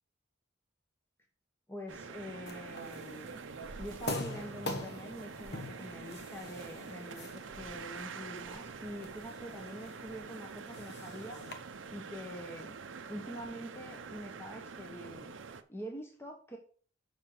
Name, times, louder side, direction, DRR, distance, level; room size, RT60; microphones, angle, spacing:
voice 1, 1.7-3.4 3.8-11.4 11.9-12.8 13.1-15.3 15.7-16.6, equal, 10° left, 2 dB, 1.1 m, -45 dB
sound 1, 1.9-15.6, right 5 dB, 70° right, 0.7 m, -46 dB
sound 2, 2.5-11.5, left 2 dB, 60° left, 1.2 m, -45 dB
7.2 x 5.1 x 5.9 m, 0.43 s
head